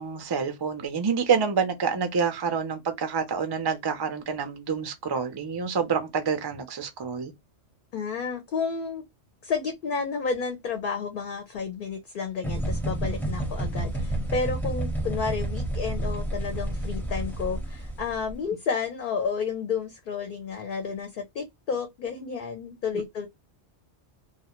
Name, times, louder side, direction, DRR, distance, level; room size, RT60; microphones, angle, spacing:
voice 1, 0.0-7.3, right 6 dB, 40° right, 0.3 m, -27 dB
voice 2, 7.9-9.0 9.4-23.3, left 5 dB, 55° left, 0.6 m, -31 dB
sound 1, 12.4-18.3, right 1 dB, ahead, 0.6 m, -30 dB
2.3 x 2.1 x 2.9 m
omnidirectional pair, 1.2 m